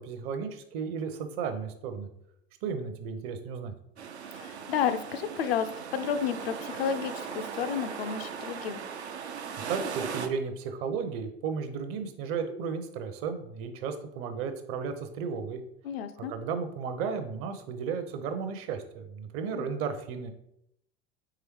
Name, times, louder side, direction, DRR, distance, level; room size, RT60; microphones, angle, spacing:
voice 1, 0.0-2.1 2.6-3.7 9.7-15.6 16.2-20.3, right 6 dB, 45° right, 8 dB, 0.6 m, -34 dB
sound 1, 4.0-10.3, right 6 dB, 85° right, 0.5 m, -38 dB
voice 2, 4.3-8.8 15.8-16.3 19.5-19.7, left 8 dB, 65° left, 10 dB, 0.5 m, -31 dB
4.8 x 3.1 x 3.0 m, 0.77 s
figure-of-eight pair, 75°, 32 cm